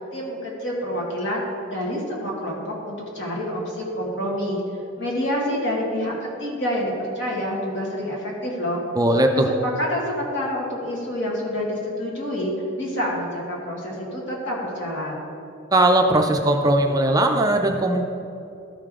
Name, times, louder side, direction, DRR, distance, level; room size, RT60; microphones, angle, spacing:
voice 1, 0.1-4.6 5.0-8.8 9.3-9.4 9.8-15.3, equal, 65° left, -3 dB, 1.9 m, -27 dB
voice 2, 9.0-9.5 15.7-18.0, right 1 dB, 20° right, 4 dB, 0.4 m, -19 dB
12.5 x 5.0 x 3.7 m, 2.7 s
head